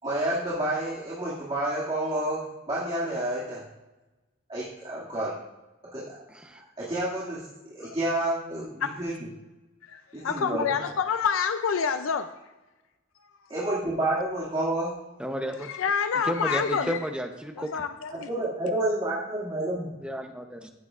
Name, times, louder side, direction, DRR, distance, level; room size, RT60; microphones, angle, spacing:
voice 1, 0.0-3.6 4.5-5.4 5.9-6.2 6.5-7.5 7.7-9.2 10.1-10.6 13.5-14.9 18.1-19.9, right 1 dB, 25° right, -8 dB, 2.2 m, -29 dB
voice 2, 6.3-6.6 15.2-15.7 16.3-17.7 20.0-20.7, equal, 5° right, 4 dB, 0.7 m, -32 dB
voice 3, 9.8-12.3 15.5-17.0 17.6-18.3, left 6 dB, 90° left, 9 dB, 0.4 m, -28 dB
15.0 x 8.5 x 2.5 m, 1.1 s
head